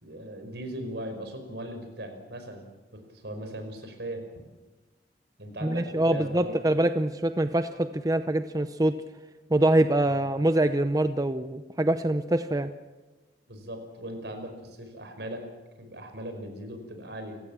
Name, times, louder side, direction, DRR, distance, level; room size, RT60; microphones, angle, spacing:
voice 1, 0.0-2.7 3.1-4.2 5.4-6.6 10.1-10.4 13.5-15.5 15.8-17.4, right 1 dB, 75° right, 6 dB, 5.3 m, -39 dB
voice 2, 5.6-9.0 9.5-12.7, right 1 dB, 20° right, 10 dB, 0.7 m, -24 dB
29.5 x 16.0 x 7.4 m, 1.2 s
head